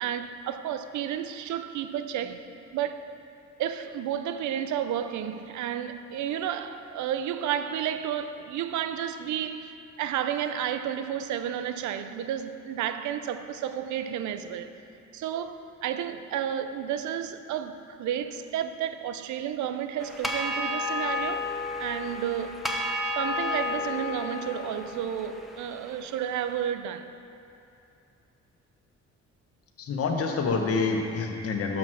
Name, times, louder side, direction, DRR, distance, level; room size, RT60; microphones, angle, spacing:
voice 1, 0.0-3.1 3.6-14.7 15.1-21.5 21.8-22.7 23.2-27.1, right 9 dB, 75° right, 0.5 m, -32 dB
sound 1, 20.0-26.4, left 2 dB, ahead, 0.7 m, -32 dB
voice 2, 29.8-31.8, left 4 dB, 50° left, 0.9 m, -27 dB
6.2 x 5.8 x 6.1 m
cardioid pair, 90°, 30 cm